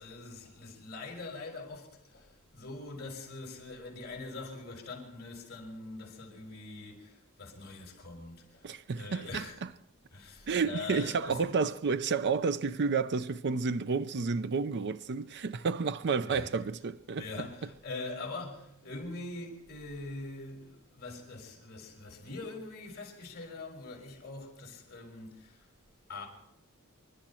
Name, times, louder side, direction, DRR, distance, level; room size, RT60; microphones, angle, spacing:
voice 1, 0.0-9.6 10.1-11.6 16.2-16.7 17.2-25.7 26.1-26.3, left 3 dB, 45° left, 5.9 m, -43 dB
voice 2, 8.6-9.7 10.5-17.2, right 5 dB, 50° right, 0.5 m, -31 dB
27.0 x 12.0 x 4.4 m
head